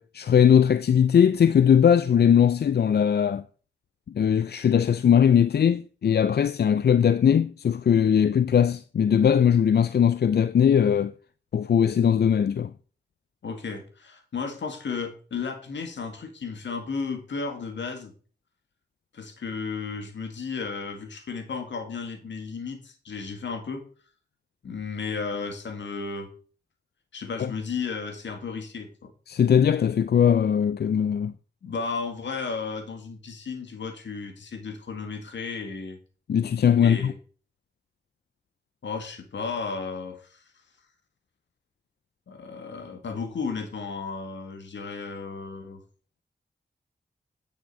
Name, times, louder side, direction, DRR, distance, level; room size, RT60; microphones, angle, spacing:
voice 1, 0.0-3.4 4.1-11.1 11.5-12.7 27.4-27.5 29.3-31.3 36.3-37.1, left 8 dB, 60° left, 0.5 m, -20 dB
voice 2, 13.4-18.1 19.1-23.8 24.6-26.3 27.1-29.1 31.6-36.0 36.8-37.2 38.8-40.4 42.3-45.8, left 5 dB, 80° left, 1.9 m, -34 dB
9.3 x 6.4 x 4.4 m
cardioid pair, 45°, 19 cm